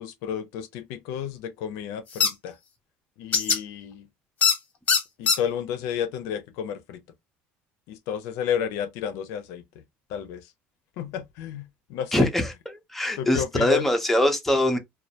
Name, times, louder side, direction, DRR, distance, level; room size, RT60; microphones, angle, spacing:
voice 1, 0.0-2.6 3.2-4.1 5.2-7.0 7.9-9.6 10.1-10.4 11.0-12.3 13.2-13.9, left 8 dB, 75° left, 0.4 m, -31 dB
sound 1, 2.2-2.3 3.3-3.6 4.4-4.6 4.9-5.4, left 6 dB, 30° left, 0.8 m, -20 dB
voice 2, 12.1-12.5 12.9-14.8, left 1 dB, 5° left, 0.5 m, -22 dB
2.2 x 2.0 x 2.7 m
cardioid pair, 130°, 5 cm